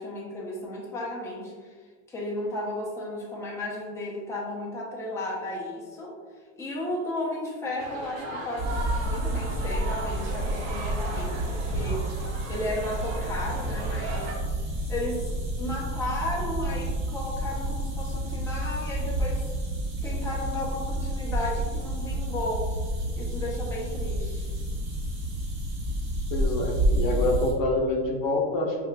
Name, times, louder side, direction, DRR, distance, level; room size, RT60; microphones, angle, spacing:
voice 1, 0.0-1.7 2.1-6.1 6.6-12.0 12.5-14.3 14.9-19.5 20.0-22.7 23.2-24.5, left 1 dB, 5° left, -4 dB, 0.6 m, -34 dB
sound 1, 7.8-14.3, right 2 dB, 65° right, 0.9 m, -37 dB
sound 2, 8.6-27.5, right 1 dB, 40° right, 1.4 m, -30 dB
voice 2, 26.3-28.8, left 2 dB, 50° left, 1 dB, 0.7 m, -26 dB
5.3 x 2.4 x 2.2 m, 1.5 s
supercardioid pair, 115°, 40 cm